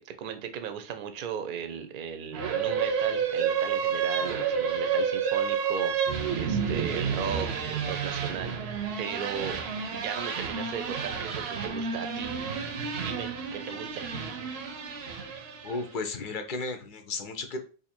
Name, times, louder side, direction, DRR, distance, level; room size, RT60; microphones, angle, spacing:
voice 1, 0.0-9.6 9.9-12.4 12.9-14.1, right 7 dB, 60° right, 8 dB, 0.6 m, -37 dB
sound 1, 2.3-16.0, right 6 dB, 90° right, 0.9 m, -30 dB
voice 2, 15.6-17.6, left 3 dB, 60° left, 7 dB, 0.7 m, -34 dB
2.7 x 2.5 x 4.3 m, 0.37 s
omnidirectional pair, 1.1 m